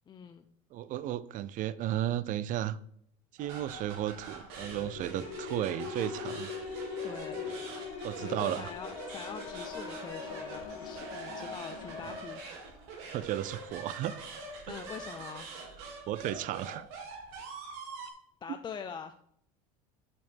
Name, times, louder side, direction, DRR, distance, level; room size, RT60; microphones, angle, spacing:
voice 1, 0.1-0.5 7.0-7.5 8.2-12.4 14.7-15.5 18.4-19.1, left 7 dB, 25° left, 0.4 m, -43 dB
voice 2, 0.7-2.8 3.4-6.5 8.0-8.7 13.1-14.2 16.1-16.9, right 12 dB, 45° right, 0.4 m, -34 dB
sound 1, 3.4-18.1, right 4 dB, 70° right, 2.1 m, -44 dB
sound 2, 4.6-12.2, left 6 dB, 75° left, 1.2 m, -41 dB
sound 3, 9.5-14.6, right 4 dB, 90° right, 2.0 m, -58 dB
6.3 x 5.8 x 4.4 m
supercardioid pair, 105°, 18 cm